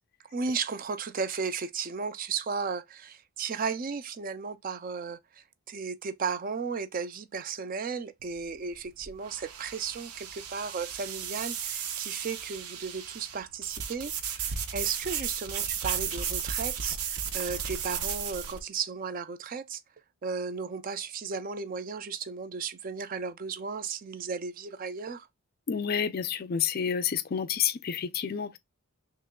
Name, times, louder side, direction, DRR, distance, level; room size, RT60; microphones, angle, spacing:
voice 1, 0.3-19.8 20.2-25.3, right 5 dB, 40° right, 0.4 m, -35 dB
sound 1, 8.2-18.6, right 7 dB, 80° right, 0.6 m, -34 dB
voice 2, 25.7-28.6, left 8 dB, 45° left, 0.4 m, -29 dB
3.1 x 2.9 x 3.5 m
head